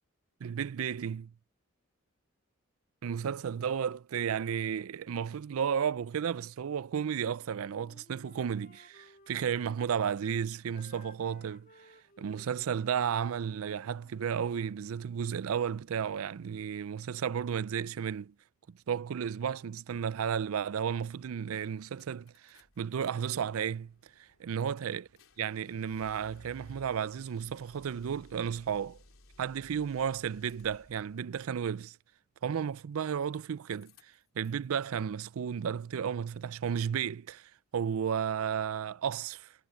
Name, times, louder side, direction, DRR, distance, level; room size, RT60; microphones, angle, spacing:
voice 1, 0.4-1.3 3.0-18.3 18.9-23.9 24.2-25.1 25.4-29.0 29.4-32.0 32.4-39.5, right 7 dB, 85° right, 0.4 m, -33 dB
Wind instrument woodwind instrument, 7.3-10.4 10.7-14.5, left 2 dB, 40° left, 2.5 m, -59 dB
sound 1, 21.1-21.2 21.6-23.1 23.5-31.2 32.7-33.4 33.7-34.6, left 1 dB, 80° left, 3.5 m, -59 dB
head